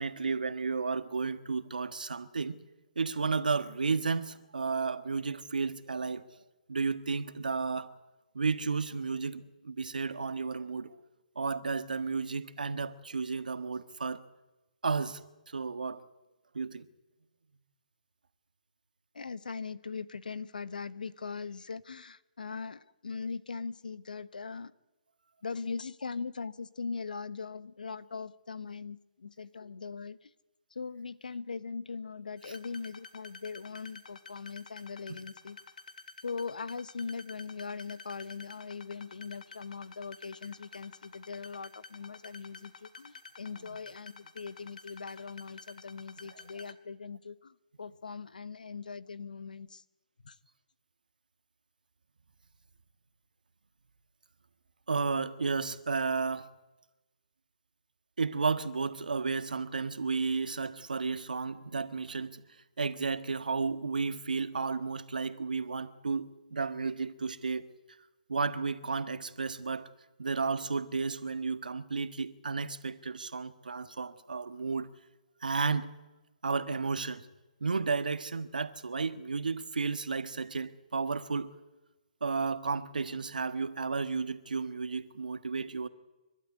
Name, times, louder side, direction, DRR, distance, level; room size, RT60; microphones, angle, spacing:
voice 1, 0.0-2.6 2.9-6.2 6.7-7.9 8.3-10.9 11.3-14.2 14.8-15.2 15.5-16.0 16.5-16.8 54.9-56.5 58.2-62.4 62.8-67.7 68.3-69.9 70.2-74.9 75.4-75.9 76.4-77.3 77.6-81.5 82.2-85.9, right 4 dB, 85° right, 1.5 m, -32 dB
voice 2, 19.1-24.7 25.4-30.3 30.7-35.6 36.2-49.8 50.2-50.4, left 5 dB, 80° left, 1.1 m, -40 dB
sound 1, 32.4-46.7, left 4 dB, 65° left, 2.2 m, -50 dB
29.5 x 12.5 x 9.6 m
hypercardioid pair, 145°, 4 cm